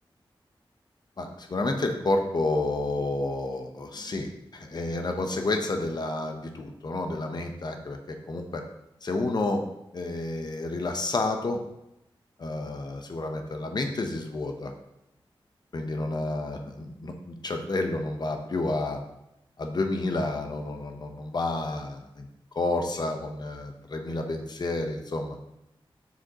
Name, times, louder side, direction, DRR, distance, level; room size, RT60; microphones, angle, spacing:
voice 1, 1.2-8.0 8.3-8.6 9.0-9.6 9.9-11.6 12.4-14.7 15.7-19.0 19.6-22.3 22.5-25.4, left 2 dB, 50° left, 4 dB, 0.9 m, -30 dB
7.2 x 6.4 x 2.9 m, 0.85 s
wide cardioid pair, 125°, 9 cm